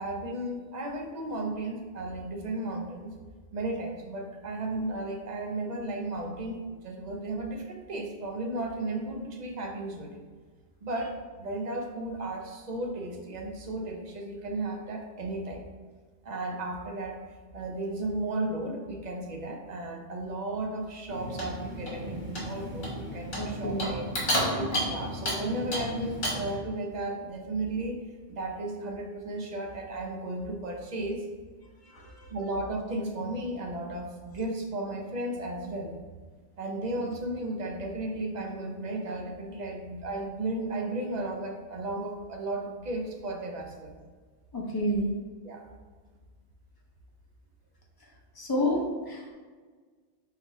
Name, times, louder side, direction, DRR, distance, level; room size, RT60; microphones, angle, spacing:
voice 1, 0.0-3.1 3.5-10.2 10.8-15.6 16.2-17.2 17.5-24.1 24.5-28.0 28.3-31.2 32.3-35.9 36.6-44.0 45.4-45.7, right 2 dB, 45° right, 2 dB, 0.7 m, -34 dB
Clock, 21.1-26.6, equal, 55° left, 1.6 m, -32 dB
voice 2, 23.4-24.0 31.9-32.3 44.5-45.2 48.4-49.3, equal, 25° left, -1 dB, 0.6 m, -29 dB
4.6 x 3.9 x 2.7 m, 1.5 s
omnidirectional pair, 1.2 m